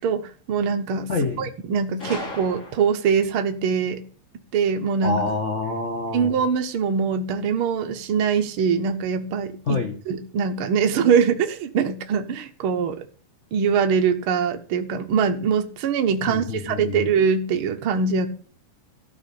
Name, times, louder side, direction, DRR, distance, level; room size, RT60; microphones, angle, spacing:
voice 1, 0.0-1.1 1.4-4.0 4.5-5.2 6.1-13.1 13.5-18.3, right 6 dB, 90° right, 1.1 m, -23 dB
voice 2, 1.1-1.5 5.0-6.4 9.7-9.9 16.3-17.1, left 3 dB, 65° left, 0.7 m, -27 dB
Gunshot gunfire, 2.0-3.2, left 2 dB, 20° left, 3.0 m, -35 dB
13.0 x 6.3 x 8.6 m
omnidirectional pair, 4.1 m